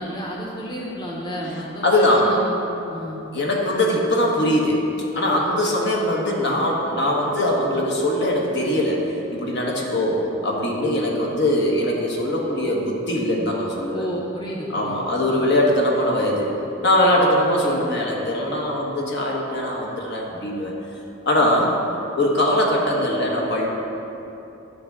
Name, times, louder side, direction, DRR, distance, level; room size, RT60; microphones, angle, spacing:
voice 1, 0.0-2.6 2.9-3.2 5.8-6.3 13.9-15.0 15.3-15.4 17.6-17.8, equal, 25° left, -4 dB, 1.0 m, -31 dB
voice 2, 1.8-2.3 3.3-4.8 5.1-14.0 14.7-16.5 16.8-20.7 21.2-21.7 22.2-23.7, left 1 dB, 60° left, -2 dB, 1.2 m, -21 dB
11.0 x 3.6 x 6.7 m, 2.9 s
head